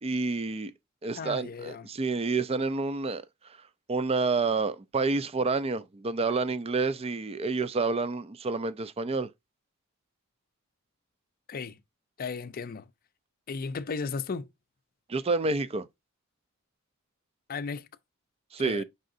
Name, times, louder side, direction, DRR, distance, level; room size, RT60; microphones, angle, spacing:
voice 1, 0.0-0.7 1.0-3.2 3.9-9.3 15.1-15.9 18.5-18.8, right 3 dB, 30° right, 0.5 m, -29 dB
voice 2, 1.1-1.9 11.5-11.8 12.2-12.9 13.5-14.5 17.5-17.9 18.6-18.8, left 5 dB, 45° left, 0.4 m, -35 dB
5.5 x 3.8 x 2.5 m
head